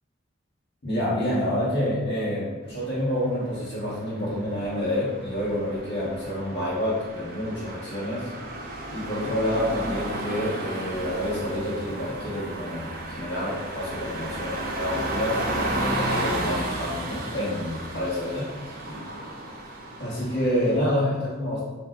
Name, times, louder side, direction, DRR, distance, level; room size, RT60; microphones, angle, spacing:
voice 1, 0.8-8.3 8.9-19.1 20.0-21.6, left 1 dB, 55° left, -10 dB, 1.3 m, -28 dB
sound 1, 2.7-20.8, right 1 dB, 50° right, 0.6 m, -33 dB
5.6 x 2.1 x 3.8 m, 1.3 s
head